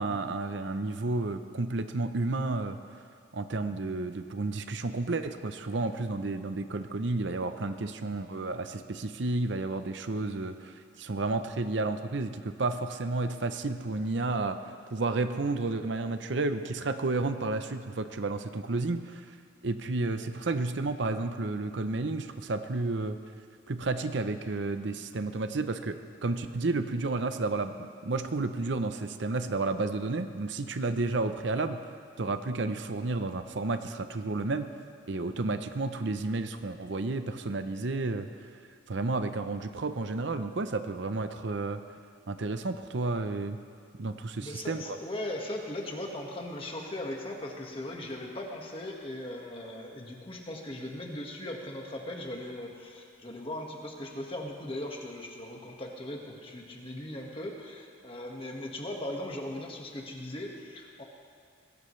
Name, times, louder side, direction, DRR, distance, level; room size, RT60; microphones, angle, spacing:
voice 1, 0.0-2.8 3.3-14.6 14.9-19.2 19.6-23.2 23.7-27.7 28.0-31.8 32.2-34.7 35.1-38.3 38.9-41.8 42.3-43.6 44.0-45.0, right 3 dB, 65° right, 9 dB, 0.7 m, -31 dB
voice 2, 44.4-61.0, left 1 dB, 30° left, 0 dB, 1.6 m, -38 dB
21.0 x 17.0 x 3.2 m, 2.3 s
head